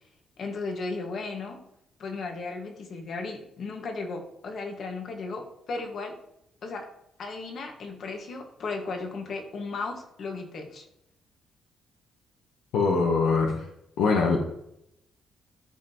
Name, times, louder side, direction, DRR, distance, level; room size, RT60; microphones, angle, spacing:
voice 1, 0.4-1.6 2.0-6.2 6.6-6.9 7.2-10.9, left 3 dB, 60° left, 3 dB, 1.7 m, -35 dB
voice 2, 12.7-13.7 14.0-14.4, left 4 dB, 90° left, 1 dB, 1.2 m, -23 dB
13.0 x 5.4 x 3.1 m, 0.78 s
cardioid pair, 90°, 0 cm